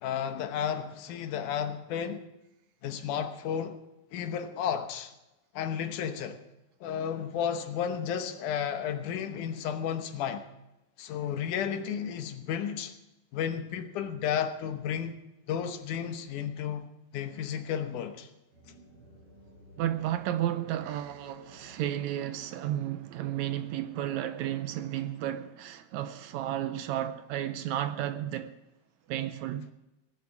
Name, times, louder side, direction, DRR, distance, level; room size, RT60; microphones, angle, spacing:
voice 1, 0.0-2.2 2.8-3.8 4.1-5.1 5.5-6.4 6.8-10.5 11.0-12.9 13.3-15.2 15.5-16.9 17.1-18.3, left 8 dB, 80° left, 2.5 m, -32 dB
sound 1, 18.5-24.8, equal, 45° right, 5.6 m, -57 dB
voice 2, 19.8-28.5 29.1-29.7, right 12 dB, 80° right, 1.8 m, -33 dB
18.0 x 8.2 x 7.2 m
omnidirectional pair, 3.5 m